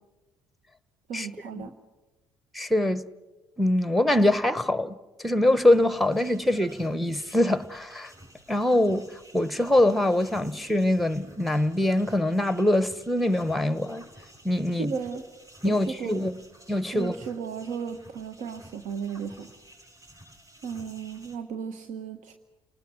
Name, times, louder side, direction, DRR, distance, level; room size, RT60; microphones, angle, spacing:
voice 1, 1.1-1.7 14.7-15.2 15.6-16.2 16.9-19.5 20.6-22.3, right 6 dB, 65° right, 1.2 m, -35 dB
voice 2, 2.5-3.0 3.6-8.1 8.5-9.1 9.3-14.1 14.4-14.9 15.6-16.4 16.7-17.1, left 1 dB, ahead, 1.1 m, -23 dB
sound 1, 5.3-21.4, right 1 dB, 25° right, 5.6 m, -52 dB
29.5 x 19.5 x 6.4 m
hypercardioid pair, 55°, 14 cm